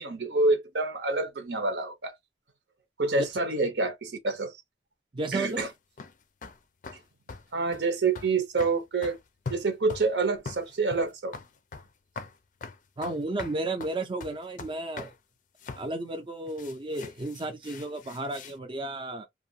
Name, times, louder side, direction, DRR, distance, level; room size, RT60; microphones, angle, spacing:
voice 1, 0.0-2.1 3.0-4.5 5.3-5.7 7.5-9.2 9.5-11.3, right 3 dB, 75° right, 0.8 m, -27 dB
voice 2, 5.1-5.6 13.0-15.1 15.8-19.3, right 2 dB, 30° right, 0.5 m, -33 dB
sound 1, 5.5-6.1 6.4-6.6 6.8-7.0 7.3-7.5 7.7-7.9 8.2-8.3 8.6-9.2 9.5-10.1 10.5-11.9 12.2-12.4 12.6-15.1 15.6-15.9 16.5-18.6, left 4 dB, 45° left, 0.4 m, -41 dB
2.5 x 2.4 x 2.7 m
head